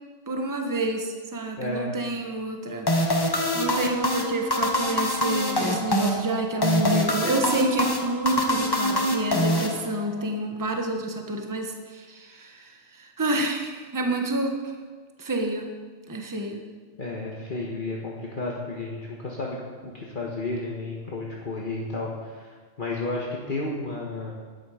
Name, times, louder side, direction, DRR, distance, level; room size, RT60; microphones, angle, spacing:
voice 1, 0.3-14.6 15.2-15.7 16.1-16.6, right 2 dB, 15° right, 3 dB, 1.1 m, -29 dB
voice 2, 1.6-1.9 17.0-19.6 19.8-24.3, left 2 dB, 40° left, -3 dB, 1.5 m, -32 dB
sound 1, 2.9-10.2, left 1 dB, 20° left, 1.2 m, -25 dB
12.5 x 10.5 x 5.0 m, 1.5 s
omnidirectional pair, 1.3 m